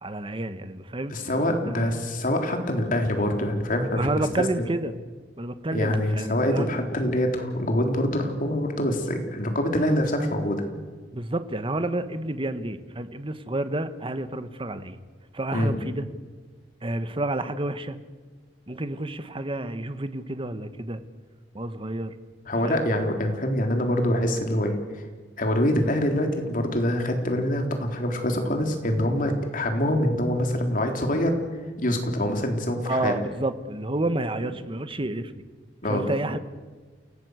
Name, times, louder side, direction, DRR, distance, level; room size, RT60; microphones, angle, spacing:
voice 1, 0.0-1.2 1.5-2.0 3.9-5.0 5.4-6.7 11.1-15.0 15.3-16.0 16.8-18.0 18.7-21.0 21.5-22.2 22.6-22.9 32.8-35.3 35.9-36.4, right 1 dB, 30° right, 11 dB, 1.3 m, -30 dB
voice 2, 1.1-4.2 5.7-10.6 15.5-15.7 22.5-24.8 25.4-31.4 31.8-33.1 35.8-36.0, left 1 dB, 50° left, 4 dB, 3.7 m, -25 dB
28.5 x 18.0 x 8.1 m, 1.4 s
head